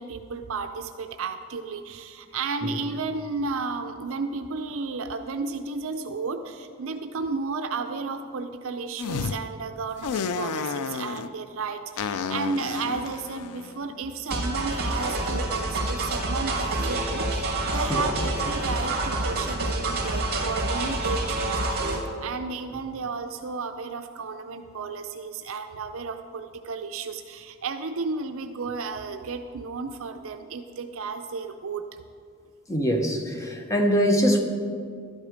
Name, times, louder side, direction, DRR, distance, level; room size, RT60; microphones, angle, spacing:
voice 1, 0.0-32.0, right 4 dB, 65° right, 7 dB, 0.5 m, -33 dB
sound 1, 9.0-9.4 10.0-11.3 12.0-14.3, left 6 dB, 85° left, 0.4 m, -31 dB
sound 2, 14.3-22.0, right 2 dB, 45° right, 2.2 m, -27 dB
voice 2, 32.7-34.4, equal, 15° left, 3 dB, 1.0 m, -23 dB
12.0 x 11.0 x 5.1 m, 2.3 s
head